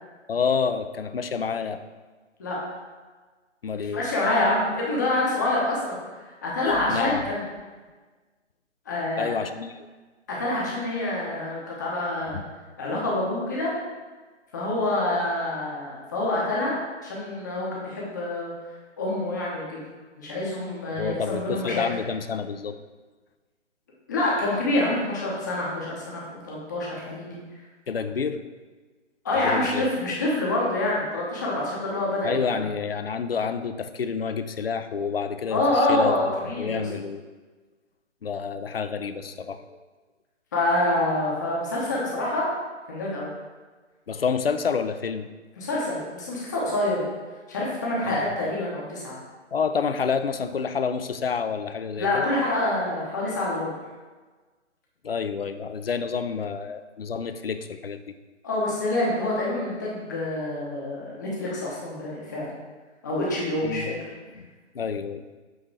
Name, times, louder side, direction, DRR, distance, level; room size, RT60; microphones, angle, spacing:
voice 1, 0.3-1.8 3.6-4.0 6.7-7.2 9.2-9.9 12.3-12.4 20.9-22.8 27.9-28.4 29.4-29.9 32.2-36.1 36.6-37.2 38.2-39.8 44.1-45.3 48.0-48.2 49.5-52.3 55.0-58.0 63.6-63.9 64.3-64.4 64.7-65.4, left 6 dB, 50° left, 10 dB, 0.4 m, -28 dB
voice 2, 3.9-6.0 6.4-7.5 8.9-9.3 10.3-12.4 12.8-13.7 14.5-16.8 17.0-18.5 19.0-19.8 20.2-21.8 24.1-27.4 29.2-32.6 35.5-36.8 40.5-42.5 42.9-43.3 45.6-47.1 47.5-49.2 51.9-53.7 58.4-62.5 63.0-63.9, left 2 dB, 15° left, -5 dB, 0.8 m, -26 dB
7.7 x 2.8 x 4.6 m, 1.3 s
figure-of-eight pair, 140°, 37 cm